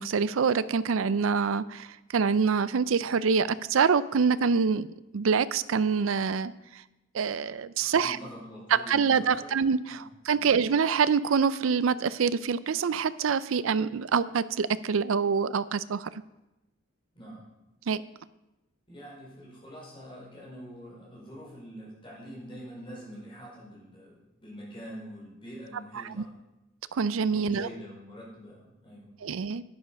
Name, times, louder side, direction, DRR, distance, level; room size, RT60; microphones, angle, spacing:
voice 1, 0.0-4.9 5.1-6.5 7.1-8.2 8.9-16.1 17.9-18.0 26.9-27.7 29.2-29.6, right 5 dB, 75° right, 17 dB, 0.5 m, -25 dB
voice 2, 7.8-9.6 9.9-10.5 17.1-17.5 18.9-26.3 27.3-29.2, equal, 25° left, -5 dB, 4.7 m, -45 dB
10.5 x 9.7 x 5.3 m, 0.97 s
head